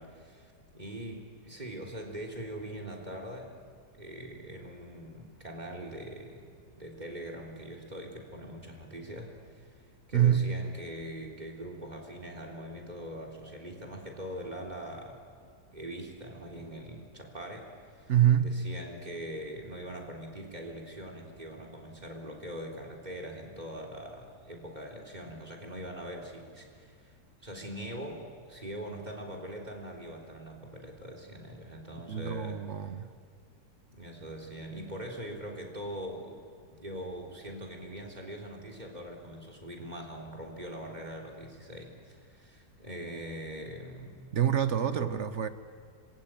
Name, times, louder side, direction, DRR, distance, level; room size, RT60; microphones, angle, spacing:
voice 1, 0.0-3.6 4.0-9.8 10.1-15.2 15.7-18.1 18.4-27.1 27.4-32.6 33.9-44.3 44.8-45.2, right 1 dB, 25° right, 2 dB, 3.6 m, -42 dB
voice 2, 10.1-10.5 18.1-18.6 32.1-33.1 44.3-45.5, right 10 dB, 50° right, 11 dB, 1.0 m, -26 dB
26.0 x 21.5 x 9.0 m, 2.2 s
omnidirectional pair, 1.8 m